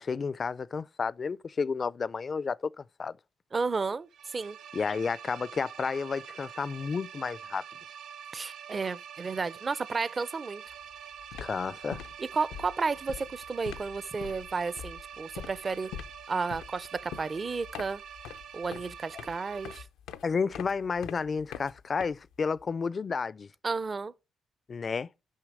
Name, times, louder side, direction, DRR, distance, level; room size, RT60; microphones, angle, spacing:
voice 1, 0.0-3.1 4.7-7.6 11.4-12.0 20.2-23.5 24.7-25.1, left 5 dB, 40° left, 0.4 m, -31 dB
voice 2, 3.5-4.6 8.3-10.6 12.2-15.9 16.3-18.0 18.5-19.8 23.6-24.1, right 4 dB, 35° right, 0.5 m, -32 dB
sound 1, 4.1-19.8, right 8 dB, 80° right, 0.8 m, -46 dB
sound 2, 10.7-10.9 11.2-22.6, left 9 dB, 85° left, 0.6 m, -44 dB
6.4 x 5.7 x 4.8 m
cardioid pair, 90°, 0 cm